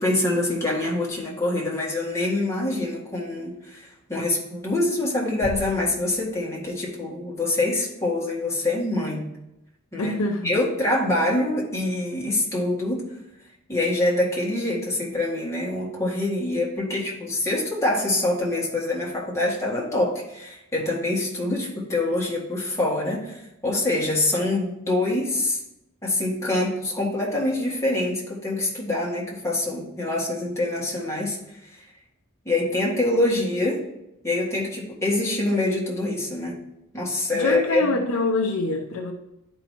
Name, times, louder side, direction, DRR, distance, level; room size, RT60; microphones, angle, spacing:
voice 1, 0.0-9.3 9.9-10.1 10.4-13.0 13.7-25.6 26.0-31.4 32.5-33.8 34.2-36.6 36.9-37.9, left 2 dB, 15° left, 1.8 m, -25 dB
sound 1, 5.4-6.8, equal, 40° left, 1.6 m, -38 dB
voice 2, 10.0-10.6 37.3-39.1, left 2 dB, 70° left, 0.6 m, -25 dB
11.0 x 4.7 x 2.9 m
head